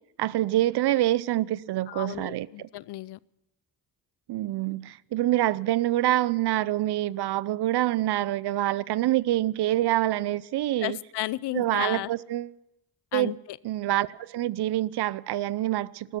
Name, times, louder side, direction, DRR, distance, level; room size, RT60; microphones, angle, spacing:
voice 1, 0.2-2.7 4.3-11.0 11.5-12.5 13.1-13.3 13.6-16.2, right 14 dB, 75° right, 0.6 m, -26 dB
voice 2, 1.9-3.2 10.8-12.1 13.1-13.6, left 16 dB, 75° left, 0.6 m, -33 dB
15.5 x 13.0 x 6.9 m
cardioid pair, 100°, 41 cm